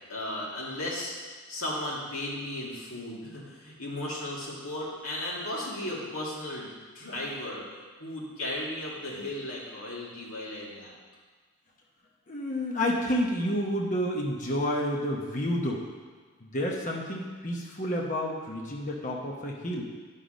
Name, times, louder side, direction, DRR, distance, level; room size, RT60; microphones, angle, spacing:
voice 1, 0.1-7.7 8.0-10.9, left 1 dB, 70° left, -5 dB, 2.4 m, -35 dB
voice 2, 12.3-15.8 16.4-19.8, equal, 35° left, -1 dB, 1.0 m, -30 dB
9.9 x 5.6 x 5.1 m, 1.4 s
head